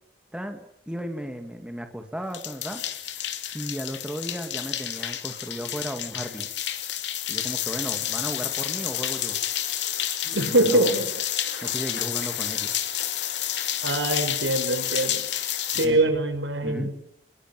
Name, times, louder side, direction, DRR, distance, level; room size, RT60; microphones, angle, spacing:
voice 1, 0.9-2.8 3.5-6.5 7.3-9.4 10.5-11.0 11.6-12.8 15.7-16.0 16.6-16.9, equal, 5° right, 6 dB, 2.4 m, -35 dB
sound 1, 2.3-15.9, left 11 dB, 70° left, 2.7 m, -30 dB
voice 2, 10.2-11.1 13.8-15.3 15.7-16.9, right 2 dB, 80° right, 8 dB, 5.5 m, -23 dB
28.0 x 22.0 x 9.4 m, 0.73 s
head